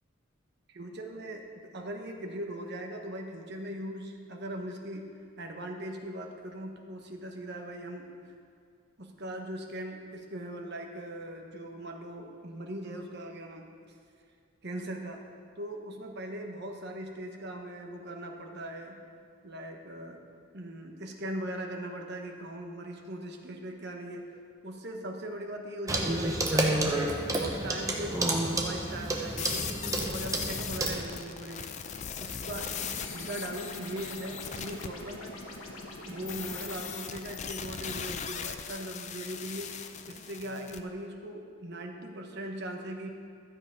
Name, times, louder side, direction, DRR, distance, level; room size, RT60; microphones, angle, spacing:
voice 1, 0.7-8.3 9.0-13.7 14.6-15.2 15.6-19.0 19.4-20.2 20.5-24.2 24.6-26.9 27.4-31.7 32.2-35.4 36.0-43.1, right 1 dB, 50° right, 2 dB, 1.1 m, -40 dB
Clock, 25.9-31.0, right 1 dB, 15° right, 0.9 m, -30 dB
sound 1, 29.4-34.9 36.3-40.8, left 7 dB, 35° left, 0.4 m, -39 dB
sound 2, 32.6-37.0, left 1 dB, 85° left, 1.4 m, -44 dB
13.0 x 7.2 x 5.2 m, 2.3 s
head